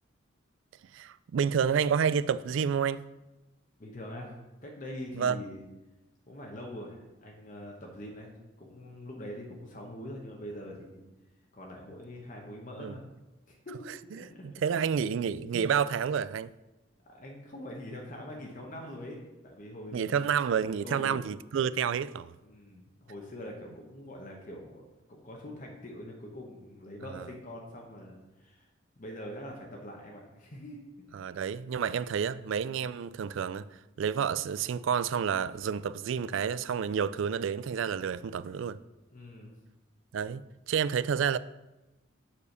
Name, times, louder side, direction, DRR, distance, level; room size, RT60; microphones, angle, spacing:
voice 1, 0.9-3.1 5.1-5.4 12.8-12.9 14.4-16.5 19.9-22.3 27.1-27.2 31.1-33.7 34.0-38.8 40.1-40.4 40.7-41.4, right 7 dB, 65° right, 0.3 m, -29 dB
voice 2, 3.8-4.3 4.6-5.6 6.3-8.3 8.6-11.0 11.5-13.0 13.5-14.5 17.1-20.1 20.8-21.2 22.4-28.7 29.0-30.8 39.1-39.6, left 1 dB, 40° left, 1.0 m, -43 dB
7.2 x 4.9 x 6.5 m
head